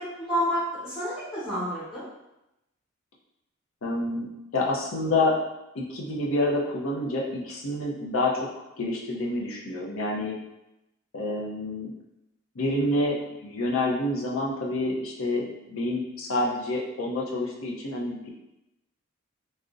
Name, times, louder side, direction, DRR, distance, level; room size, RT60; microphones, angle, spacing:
voice 1, 0.0-2.0, equal, 5° right, -11 dB, 0.9 m, -29 dB
voice 2, 3.8-5.4 5.7-8.4 8.8-10.4 11.1-11.9 12.6-18.3, left 2 dB, 80° left, -3 dB, 0.6 m, -28 dB
2.5 x 2.1 x 3.6 m, 0.91 s
head